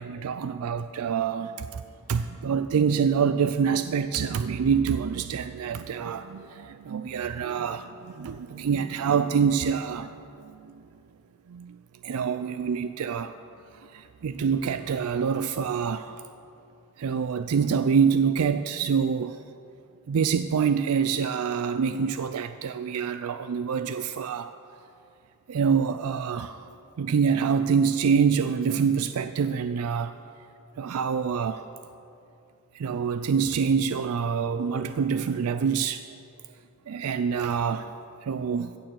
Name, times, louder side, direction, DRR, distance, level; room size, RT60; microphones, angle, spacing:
voice 1, 0.0-1.8 2.1-10.8 11.5-11.8 12.0-13.4 13.7-16.2 17.0-19.4 20.1-24.5 25.5-26.7 27.0-30.2 30.8-31.7 32.7-36.0 36.9-37.9 38.2-38.8, right 6 dB, 70° right, 11 dB, 0.4 m, -26 dB
15.0 x 7.0 x 7.6 m, 2.6 s
head